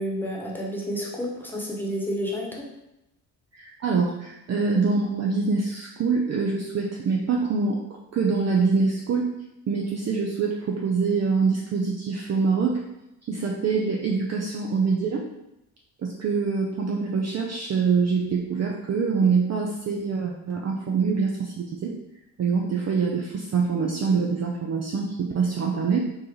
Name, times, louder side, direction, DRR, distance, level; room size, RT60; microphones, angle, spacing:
voice 1, 0.0-2.7, equal, 5° left, -3 dB, 1.2 m, -30 dB
voice 2, 3.5-7.8 8.1-9.3 9.7-12.8 13.3-15.3 16.0-21.9 22.4-26.0, right 5 dB, 35° right, -1 dB, 0.5 m, -25 dB
4.5 x 2.5 x 3.1 m, 0.90 s
hypercardioid pair, 45°, 47 cm